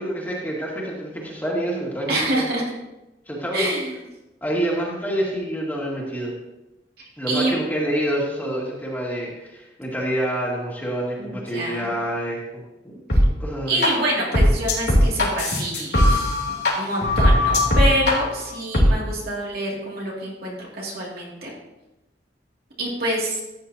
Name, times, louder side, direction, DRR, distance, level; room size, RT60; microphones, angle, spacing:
voice 1, 0.0-2.2 3.3-3.7 4.4-6.3 7.2-12.4 12.8-13.0 13.4-13.8, right 1 dB, 10° left, -4 dB, 2.3 m, -27 dB
voice 2, 2.1-2.7 3.5-4.0 7.0-7.6 11.2-11.9 13.1-13.2 13.7-21.5 22.8-23.4, right 1 dB, 60° right, -3 dB, 2.6 m, -26 dB
sound 1, 13.1-13.2 13.8-13.9 14.3-16.7 17.0-18.1 18.7-18.9, left 1 dB, 65° left, 3.4 m, -18 dB
14.0 x 8.8 x 2.9 m, 0.98 s
head